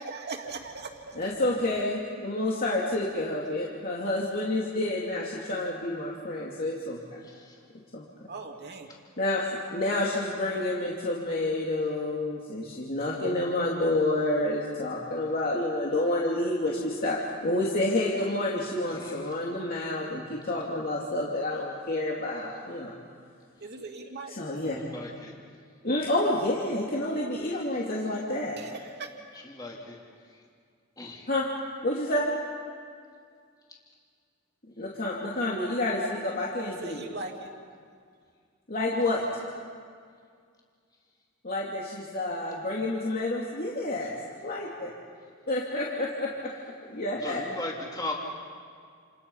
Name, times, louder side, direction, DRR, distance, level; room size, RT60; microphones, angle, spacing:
voice 1, 0.0-1.3 8.3-8.9 23.6-24.4 28.6-29.1 36.6-37.5, right 3 dB, 55° right, 2 dB, 2.8 m, -39 dB
voice 2, 1.2-7.2 7.9-8.1 9.2-22.9 24.3-24.8 25.8-28.6 31.3-31.5 31.8-32.3 34.8-37.0 38.7-39.2 41.4-44.1 44.4-44.7 45.5-46.3 46.9-47.4, left 1 dB, 45° left, -4 dB, 2.9 m, -29 dB
voice 3, 7.2-7.5 18.9-19.2 24.8-25.3 27.5-27.6 29.5-30.0 31.0-31.3 47.2-48.1, left 2 dB, 20° left, -2 dB, 3.1 m, -37 dB
29.5 x 29.0 x 5.7 m, 2.1 s
head